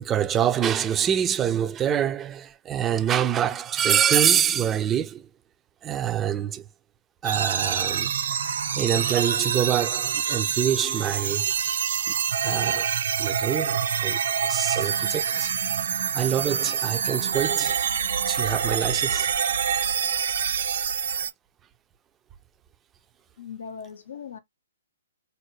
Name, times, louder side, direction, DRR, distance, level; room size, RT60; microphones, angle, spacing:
voice 1, 0.0-5.3 5.8-6.7 7.2-8.1 8.7-11.5 12.4-12.9 13.2-15.5 16.1-17.9 18.3-19.3, right 9 dB, 20° right, 0.4 m, -25 dB
sound 1, 7.2-21.3, right 7 dB, 70° right, 0.6 m, -26 dB
voice 2, 23.4-24.4, left 6 dB, 75° left, 0.6 m, -39 dB
4.2 x 2.1 x 3.0 m
hypercardioid pair, 140°, 0 cm